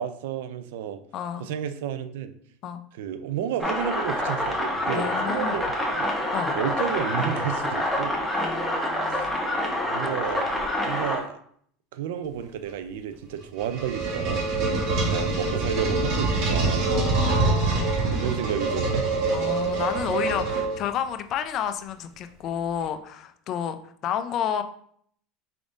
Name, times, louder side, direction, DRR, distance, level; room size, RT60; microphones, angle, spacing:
voice 1, 0.0-1.0 1.4-2.3 3.0-6.1 6.5-8.3 9.1-9.2 9.9-10.6 10.8-11.4 11.9-14.5 15.0-16.9 18.1-19.1, right 9 dB, 80° right, 11 dB, 0.4 m, -31 dB
voice 2, 1.1-1.4 2.6-2.8 4.9-5.6 6.3-6.6 8.4-9.4 14.7-15.4 16.9-18.0 19.3-24.6, left 9 dB, 45° left, 10 dB, 0.4 m, -31 dB
sound 1, 3.6-11.2, left 1 dB, ahead, 0.9 m, -27 dB
sound 2, 13.3-21.1, right 3 dB, 60° right, 1.4 m, -25 dB
5.0 x 3.4 x 2.5 m, 0.63 s
supercardioid pair, 120°, 0 cm